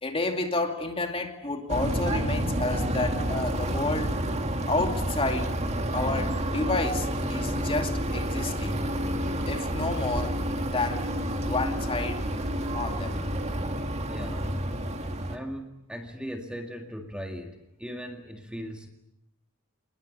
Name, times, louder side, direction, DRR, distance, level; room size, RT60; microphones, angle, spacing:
voice 1, 0.0-4.2 4.7-5.5 5.9-8.9 9.5-11.0 11.4-12.2 12.7-13.2, left 2 dB, 25° left, 4 dB, 2.5 m, -30 dB
sound 1, 1.7-15.4, right 1 dB, 30° right, 2.0 m, -29 dB
voice 2, 14.1-14.5 15.3-18.9, equal, 5° right, 3 dB, 2.0 m, -38 dB
27.5 x 20.5 x 8.3 m, 0.83 s
head